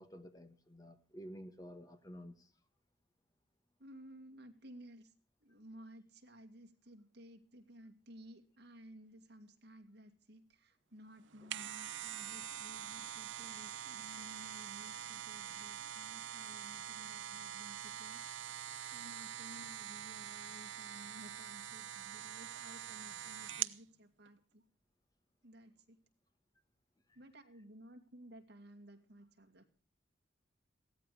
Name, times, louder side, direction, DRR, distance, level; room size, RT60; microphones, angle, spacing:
voice 1, 0.0-2.5 11.4-11.5, equal, 20° left, 8 dB, 1.6 m, -51 dB
voice 2, 3.8-5.1 5.4-18.2 18.9-24.6 25.4-26.0 27.1-29.8, equal, 55° right, 4 dB, 2.3 m, -56 dB
sound 1, 11.2-23.8 24.3-24.4, right 10 dB, 70° right, 0.7 m, -44 dB
16.5 x 13.5 x 5.0 m, 0.41 s
head